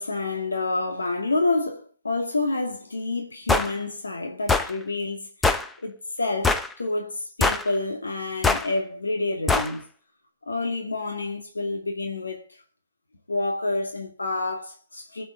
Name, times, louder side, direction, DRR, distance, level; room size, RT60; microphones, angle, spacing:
voice 1, 0.0-5.3 5.8-9.9 10.4-12.6 13.3-15.2, left 2 dB, 85° left, 2.4 m, -28 dB
sound 1, 3.5-3.7 4.5-4.7 5.4-5.7 6.4-6.7 7.4-7.7 8.4-8.7 9.5-9.7, left 3 dB, 10° left, 0.8 m, -22 dB
22.0 x 8.2 x 4.0 m
figure-of-eight pair, 130°, 0 cm